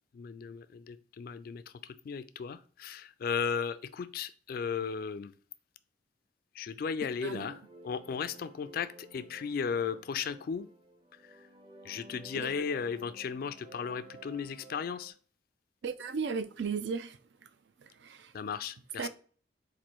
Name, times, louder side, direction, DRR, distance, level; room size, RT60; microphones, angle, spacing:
voice 1, 0.1-1.6 2.0-5.3 6.6-10.7 11.8-15.1 18.3-19.1, left 6 dB, 50° left, 0.3 m, -35 dB
sound 1, 7.2-15.1, right 1 dB, 30° right, 0.7 m, -54 dB
voice 2, 7.2-7.6 12.4-12.5 15.8-17.2 18.0-18.3 19.0-19.1, right 5 dB, 65° right, 0.4 m, -35 dB
4.2 x 2.6 x 4.4 m
head